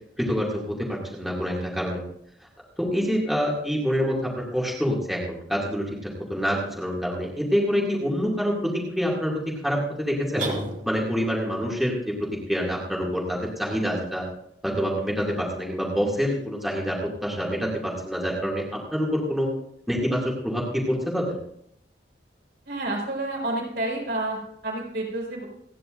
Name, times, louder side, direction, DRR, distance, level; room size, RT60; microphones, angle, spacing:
voice 1, 0.2-2.0 2.8-8.5 9.0-9.3 9.6-10.4 10.9-11.9 12.5-14.2 14.6-18.6 18.9-19.5 19.9-21.3, equal, ahead, -4 dB, 2.4 m, -26 dB
sound 1, 10.4-11.3, right 1 dB, 40° right, 2.2 m, -31 dB
voice 2, 22.7-25.5, right 2 dB, 70° right, -2 dB, 5.1 m, -29 dB
28.0 x 10.0 x 2.6 m, 0.72 s
head